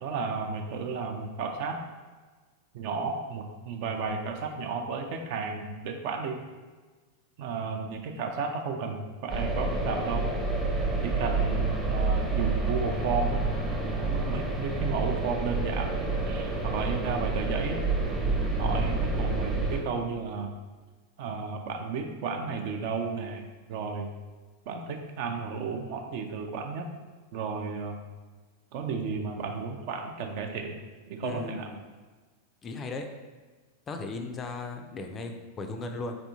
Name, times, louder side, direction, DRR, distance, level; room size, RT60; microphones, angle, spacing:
voice 1, 0.0-1.8 2.7-6.4 7.4-10.3 11.0-13.4 13.8-16.0 16.2-17.8 18.6-20.6 21.2-23.4 23.7-24.1 24.7-26.9 27.3-28.0 28.7-30.8 31.1-31.7, right 5 dB, 50° right, 4 dB, 0.4 m, -33 dB
sound 1, 9.3-19.8, right 3 dB, 10° right, 0.7 m, -28 dB
voice 2, 31.2-31.8 32.6-33.1 33.9-36.2, left 3 dB, 25° left, 5 dB, 0.4 m, -36 dB
4.2 x 3.3 x 2.7 m, 1.4 s
figure-of-eight pair, 90°, 0 cm